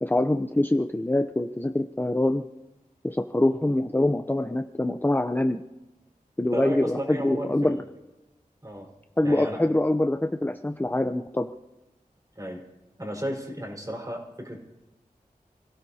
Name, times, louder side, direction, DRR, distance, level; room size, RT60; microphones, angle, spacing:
voice 1, 0.0-2.4 3.0-5.6 6.4-7.8 9.2-11.5, left 1 dB, 15° left, 6 dB, 0.7 m, -24 dB
voice 2, 6.5-7.8 8.6-8.9 9.2-9.6 12.3-12.7 13.0-14.6, equal, 25° right, 0 dB, 4.9 m, -33 dB
29.5 x 17.0 x 2.9 m, 1.0 s
wide cardioid pair, 80°, 14 cm